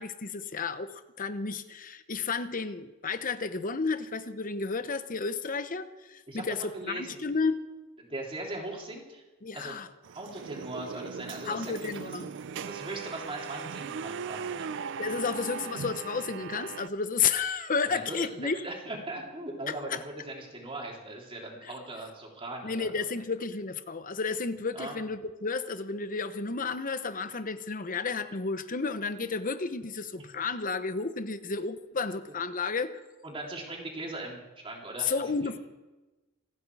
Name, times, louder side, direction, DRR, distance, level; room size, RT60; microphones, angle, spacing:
voice 1, 0.0-7.6 9.4-9.9 11.5-12.3 15.0-18.6 19.7-20.0 22.6-33.0 35.0-35.6, left 4 dB, 40° left, 11 dB, 0.9 m, -32 dB
voice 2, 6.7-7.3 8.0-9.2 9.5-9.7 10.1-12.3 12.5-14.7 17.9-18.2 18.4-23.0 24.7-25.0 30.2-30.3 33.2-35.5, right 2 dB, 25° right, -1 dB, 3.4 m, -40 dB
sound 1, 10.0-16.9, right 6 dB, 55° right, 0.4 m, -39 dB
28.0 x 9.8 x 4.8 m, 1.1 s
head